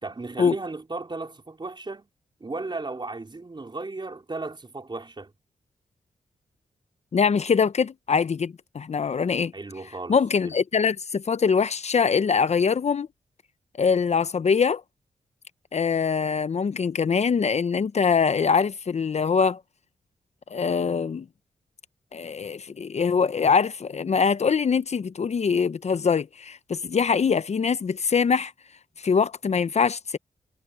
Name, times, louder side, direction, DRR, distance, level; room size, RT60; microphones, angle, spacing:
voice 1, 0.0-2.1 2.4-5.3 9.5-10.2 10.4-10.5, right 3 dB, 35° right, 4.2 m, -35 dB
voice 2, 7.1-9.5 10.1-13.1 13.8-14.8 15.7-19.6 20.5-21.3 22.1-28.5 29.0-30.2, left 6 dB, 55° left, 0.8 m, -23 dB
cardioid pair, 50°, 14 cm